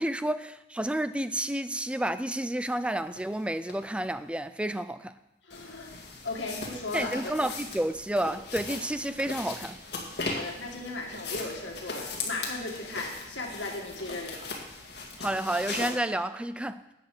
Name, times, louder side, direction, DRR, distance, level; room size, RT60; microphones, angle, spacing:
voice 1, 0.0-5.1 6.9-9.8 15.2-16.9, right 1 dB, 5° right, 0.4 m, -30 dB
sound 1, 3.1-3.2 3.7-3.8 5.5-15.9, left 3 dB, 60° left, 2.1 m, -39 dB
voice 2, 5.4-5.9 6.2-7.3 10.2-14.5, left 2 dB, 80° left, 2.1 m, -36 dB
13.0 x 8.4 x 4.9 m
head